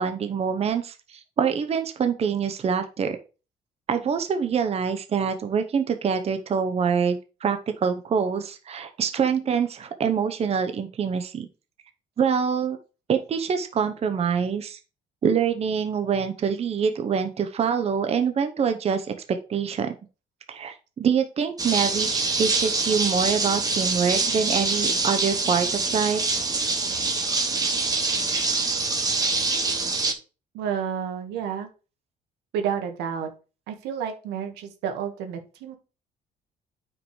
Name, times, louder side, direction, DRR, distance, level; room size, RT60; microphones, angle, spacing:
voice 1, 0.0-3.2 3.9-11.5 12.2-12.8 13.1-14.8 15.2-19.9 20.5-26.2, right 6 dB, 40° right, 7 dB, 0.9 m, -25 dB
sound 1, 21.6-30.1, right 3 dB, 20° right, 1.6 m, -25 dB
voice 2, 30.5-31.7 32.5-33.3 33.7-35.8, right 8 dB, 85° right, 5 dB, 1.6 m, -30 dB
9.2 x 5.3 x 3.2 m, 0.33 s
cardioid pair, 110°, 17 cm